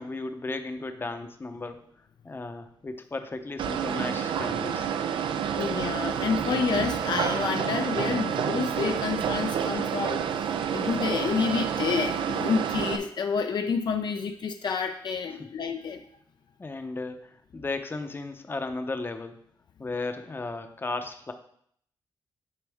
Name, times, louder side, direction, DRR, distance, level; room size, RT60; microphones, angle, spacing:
voice 1, 0.0-1.8 2.2-5.0 16.6-19.4 19.8-21.3, left 3 dB, 25° left, 7 dB, 0.7 m, -35 dB
sound 1, 3.6-13.0, right 8 dB, 85° right, 0.5 m, -29 dB
voice 2, 5.5-16.0, left 5 dB, 60° left, 6 dB, 0.4 m, -29 dB
9.6 x 4.1 x 3.5 m, 0.66 s
cardioid pair, 100°, 8 cm